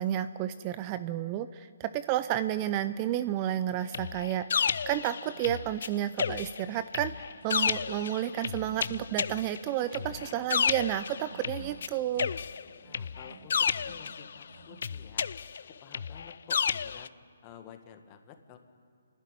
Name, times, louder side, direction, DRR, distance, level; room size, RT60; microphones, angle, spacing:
voice 1, 0.0-12.3, right 12 dB, 25° right, 13 dB, 0.5 m, -31 dB
sound 1, 3.9-5.9 6.2-11.9 12.2-14.4 14.8-17.1, left 6 dB, 60° left, 0.4 m, -32 dB
sound 2, 5.2-15.0, right 3 dB, 65° right, 3.6 m, -55 dB
voice 2, 10.0-10.4 12.8-15.3 15.7-17.1 17.4-18.6, left 8 dB, 25° left, 6 dB, 1.7 m, -51 dB
28.5 x 12.0 x 9.9 m, 2.3 s
hypercardioid pair, 155°, 0 cm